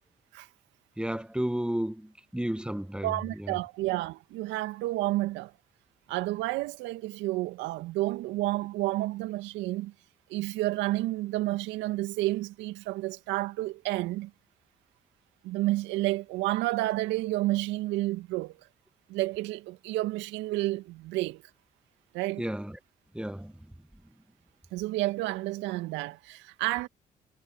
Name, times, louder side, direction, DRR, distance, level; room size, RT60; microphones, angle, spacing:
voice 1, 1.0-3.1 3.4-3.5 22.4-22.8 23.1-23.5, right 1 dB, 5° right, 1.5 m, -32 dB
voice 2, 3.0-5.5 6.1-9.9 10.3-14.3 15.4-18.5 19.1-21.4 22.1-22.4 24.7-26.9, right 18 dB, 75° right, 2.1 m, -30 dB
hypercardioid pair, 50°, 19 cm